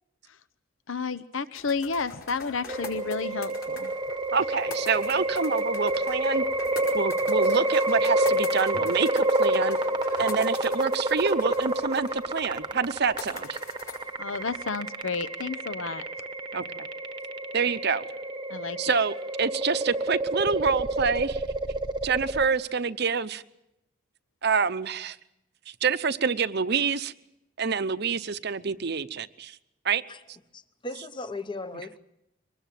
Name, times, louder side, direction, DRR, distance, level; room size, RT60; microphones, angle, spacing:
voice 1, 0.9-3.9 14.2-16.0 18.5-18.9, left 4 dB, 70° left, 0.8 m, -31 dB
sound 1, 1.6-14.8, left 4 dB, 50° left, 5.1 m, -44 dB
sound 2, 2.7-22.5, right 1 dB, 20° right, 1.0 m, -28 dB
voice 2, 4.3-6.4 6.9-9.8 10.2-13.6 16.5-16.9 17.5-18.0 18.8-21.4 22.0-23.4 24.4-25.2 25.8-27.1 27.6-29.6 29.8-30.0, right 5 dB, 50° right, 0.7 m, -27 dB
voice 3, 30.5-32.0, left 2 dB, 20° left, 0.8 m, -37 dB
23.5 x 20.0 x 7.6 m
head